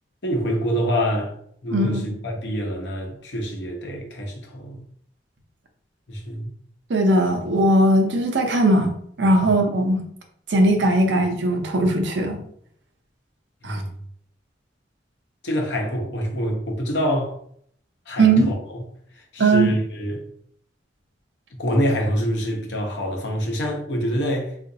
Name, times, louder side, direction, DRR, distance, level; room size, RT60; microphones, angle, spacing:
voice 1, 0.2-1.3 1.6-4.8 6.1-6.5 9.4-9.5 13.6-13.9 15.4-17.4 18.1-18.8 19.1-20.2 21.6-24.7, equal, 70° left, 0.8 m, -26 dB
voice 2, 1.7-2.1 6.9-8.9 9.2-10.0 10.5-12.4 13.6-13.8 18.2-18.5 19.4-19.7, right 1 dB, 75° right, 0.6 m, -19 dB
3.8 x 2.5 x 2.6 m
head